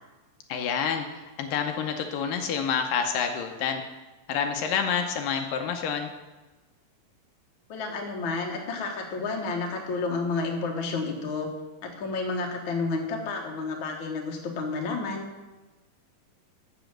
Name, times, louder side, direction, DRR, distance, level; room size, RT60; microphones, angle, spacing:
voice 1, 0.5-1.1 1.4-3.8 4.3-6.1, left 7 dB, 80° left, 5 dB, 2.4 m, -28 dB
voice 2, 7.7-11.5 11.8-15.2, left 3 dB, 55° left, 1 dB, 1.4 m, -30 dB
7.1 x 6.8 x 7.5 m, 1.2 s
omnidirectional pair, 4.1 m